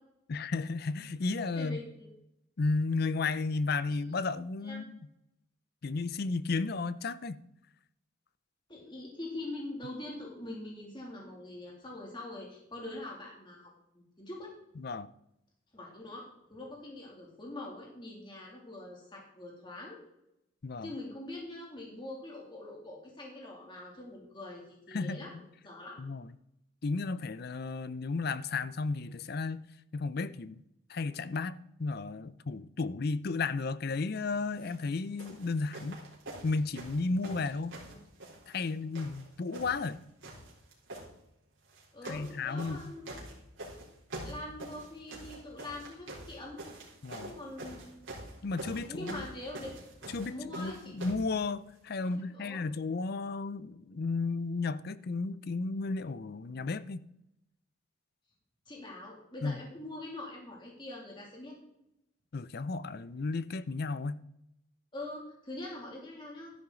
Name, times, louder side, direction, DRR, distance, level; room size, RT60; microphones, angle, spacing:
voice 1, 0.3-1.8 2.6-5.0 5.8-7.4 14.8-15.1 20.6-20.9 24.9-25.3 26.0-26.3 26.8-30.6 30.9-36.0 36.4-37.8 38.5-40.0 42.1-42.9 47.0-47.3 48.4-49.3 50.1-57.0 59.4-59.6 62.3-64.2, left 3 dB, 50° left, 0.5 m, -33 dB
voice 2, 1.5-2.1 4.6-4.9 8.7-14.5 15.7-20.0 20.8-25.3 25.6-26.0 37.8-38.0 41.9-43.2 44.2-46.6 47.2-47.9 48.9-49.7 50.3-50.9 52.0-52.6 58.7-61.6 64.9-66.6, left 2 dB, 25° left, 2.6 m, -43 dB
sound 1, 34.5-34.8 35.2-38.7 38.9-39.9 40.2-41.1 41.7-42.3 42.6-51.3 52.1-52.2, right 1 dB, 65° right, 3.8 m, -45 dB
13.0 x 10.5 x 3.9 m
head